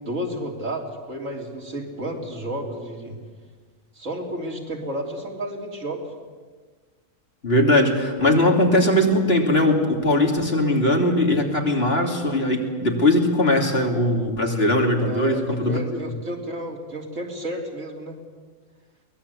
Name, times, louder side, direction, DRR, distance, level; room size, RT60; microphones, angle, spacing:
voice 1, 0.0-3.2 4.0-6.0 15.1-18.2, right 1 dB, 65° right, 1 dB, 3.5 m, -31 dB
voice 2, 7.4-15.8, left 1 dB, 45° left, 1 dB, 3.2 m, -20 dB
23.0 x 19.5 x 8.3 m, 1.5 s
omnidirectional pair, 1.4 m